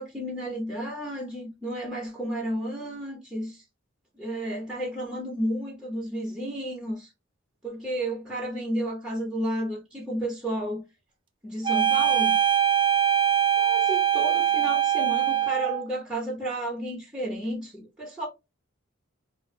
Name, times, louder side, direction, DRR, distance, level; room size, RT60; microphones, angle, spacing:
voice 1, 0.0-3.6 4.2-7.1 7.6-10.8 11.4-12.4 13.6-18.3, right 1 dB, 5° right, 0.8 m, -32 dB
sound 1, 11.6-15.8, right 10 dB, 25° right, 0.3 m, -22 dB
2.5 x 2.2 x 3.2 m
head